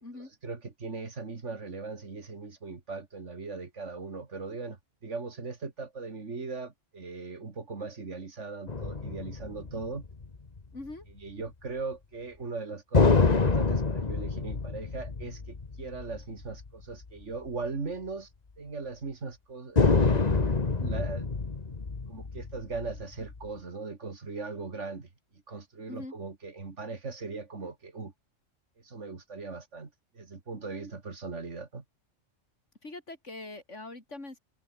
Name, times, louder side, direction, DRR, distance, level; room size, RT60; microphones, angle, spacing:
voice 1, 0.1-10.0 11.1-18.3 18.6-21.3 22.1-25.1 25.5-28.1 28.8-31.8, right 4 dB, 70° right, 2.7 m, -39 dB
sound 1, 8.7-10.6 12.9-16.7 17.0-17.1 19.8-23.4, left 4 dB, 35° left, 1.5 m, -27 dB
voice 2, 10.7-11.0 25.9-26.1 32.8-34.4, left 2 dB, 70° left, 4.9 m, -42 dB
omnidirectional pair, 1.3 m